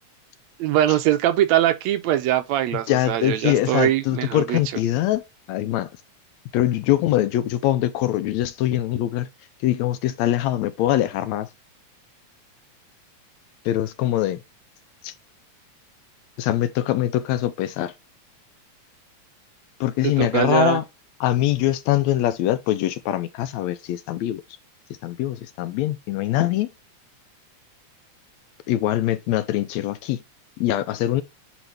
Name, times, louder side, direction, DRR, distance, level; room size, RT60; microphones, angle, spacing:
voice 1, 0.6-4.6 20.0-20.8, right 12 dB, 80° right, 1.8 m, -22 dB
voice 2, 2.9-5.2 5.5-5.9 6.5-9.3 9.6-11.5 13.7-14.4 15.0-15.1 16.4-17.9 19.8-20.8 21.2-24.4 25.0-26.7 28.7-30.2 30.6-31.2, left 13 dB, 75° left, 1.8 m, -23 dB
9.2 x 3.5 x 3.3 m
omnidirectional pair, 3.4 m